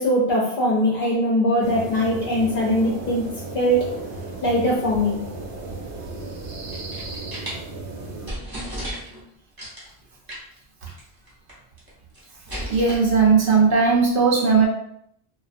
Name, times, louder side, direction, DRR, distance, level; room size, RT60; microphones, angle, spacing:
voice 1, 0.0-3.3 3.5-4.0 4.4-5.2, equal, 60° left, -4 dB, 0.7 m, -21 dB
sound 1, 1.6-8.3, right 3 dB, 85° right, 0.9 m, -34 dB
sound 2, 6.5-7.6 8.0-8.1 8.3-9.2 9.6-9.9 10.3-10.6 10.9-11.0 11.3-11.9 12.1-13.0, equal, 25° right, 0.6 m, -34 dB
voice 2, 12.7-14.7, right 5 dB, 60° right, -1 dB, 0.7 m, -17 dB
2.3 x 2.3 x 2.4 m, 0.72 s
omnidirectional pair, 1.1 m